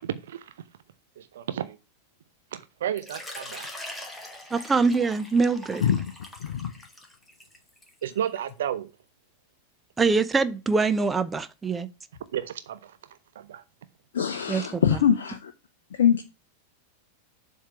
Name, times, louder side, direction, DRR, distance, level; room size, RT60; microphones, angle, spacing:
voice 1, 0.0-0.6 1.2-1.8 2.5-3.7 8.0-8.9 12.3-13.6, right 10 dB, 60° right, 0.5 m, -33 dB
Water / Liquid, 3.0-8.5, left 1 dB, 5° left, 1.7 m, -42 dB
voice 2, 4.5-5.8 10.0-11.9 14.5-15.0, right 4 dB, 15° right, 0.7 m, -24 dB
voice 3, 6.4-6.7 14.1-15.5 16.0-16.2, left 8 dB, 60° left, 0.6 m, -23 dB
7.2 x 3.7 x 5.9 m
figure-of-eight pair, 90°, 0 cm